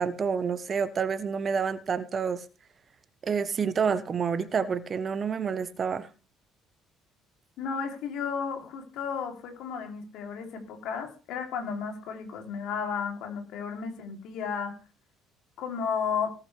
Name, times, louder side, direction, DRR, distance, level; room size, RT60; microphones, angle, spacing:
voice 1, 0.0-2.4 3.2-6.1, right 6 dB, 40° right, 1.0 m, -28 dB
voice 2, 7.6-14.7 15.6-16.3, left 6 dB, 65° left, 3.1 m, -33 dB
18.5 x 8.9 x 3.4 m
hypercardioid pair, 55°, 0 cm